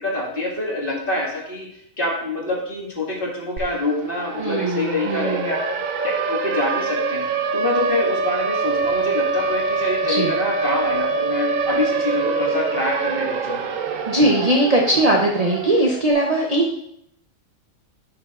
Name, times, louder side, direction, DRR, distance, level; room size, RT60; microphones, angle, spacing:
voice 1, 0.0-1.7 2.0-5.8 6.0-7.2 7.5-13.6, left 2 dB, 40° left, -3 dB, 2.1 m, -25 dB
Siren, 3.6-3.7 4.0-16.0, right 5 dB, 75° right, 1.0 m, -25 dB
voice 2, 4.4-5.5 10.1-10.3 14.1-16.8, right 1 dB, 35° right, -1 dB, 0.7 m, -20 dB
9.8 x 6.4 x 2.4 m, 0.74 s
omnidirectional pair, 1.4 m